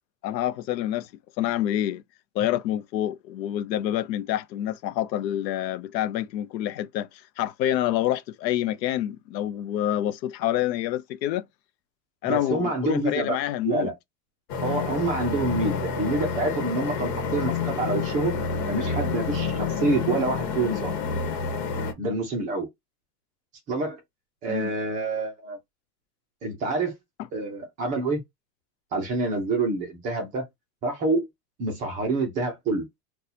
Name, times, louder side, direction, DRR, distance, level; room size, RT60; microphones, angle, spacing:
voice 1, 0.2-1.1 1.4-2.0 2.3-11.4 12.2-13.9 24.5-24.7 27.2-27.3, left 12 dB, 85° left, 0.6 m, -27 dB
voice 2, 12.2-13.4 13.6-13.9 14.6-18.4 18.7-20.9 22.0-22.7 23.7-24.0 24.4-25.6 26.4-26.9 27.3-28.2 28.9-30.4 30.8-31.3 31.6-32.9, right 3 dB, 15° right, 0.5 m, -27 dB
sound 1, 14.5-21.9, left 5 dB, 70° left, 1.2 m, -29 dB
2.6 x 2.3 x 4.0 m
supercardioid pair, 160°, 49 cm